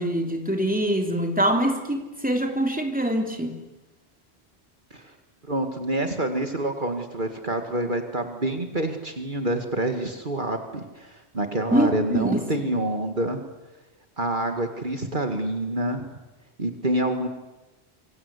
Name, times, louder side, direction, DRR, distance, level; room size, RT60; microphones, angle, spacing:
voice 1, 0.0-3.5 11.7-12.5, equal, 10° right, 3 dB, 3.3 m, -24 dB
voice 2, 5.5-13.4 14.2-16.1 16.6-17.3, right 1 dB, 50° right, 6 dB, 2.2 m, -27 dB
26.5 x 24.5 x 8.4 m, 1.1 s
omnidirectional pair, 1.1 m